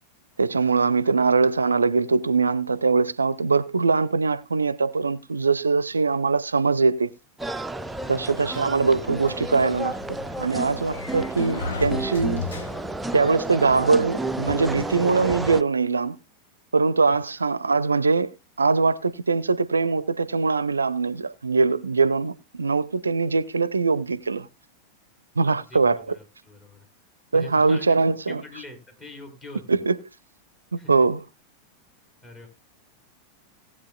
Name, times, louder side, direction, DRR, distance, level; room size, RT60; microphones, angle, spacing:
voice 1, 0.4-7.1 8.1-10.0 10.4-12.4 13.1-16.2 16.7-24.5 25.4-26.2 27.3-28.4 29.7-30.0 30.7-31.2, right 4 dB, 75° right, 0.4 m, -22 dB
sound 1, 7.4-15.6, right 2 dB, 5° right, 0.4 m, -31 dB
voice 2, 8.0-8.7 17.1-17.2 25.4-26.9 27.3-28.0 28.2-29.8 30.8-30.9 32.2-32.5, left 1 dB, 25° left, 4.1 m, -43 dB
Sliding door, 8.5-13.2, left 4 dB, 65° left, 1.4 m, -36 dB
18.0 x 8.3 x 2.3 m
figure-of-eight pair, 90°, 0 cm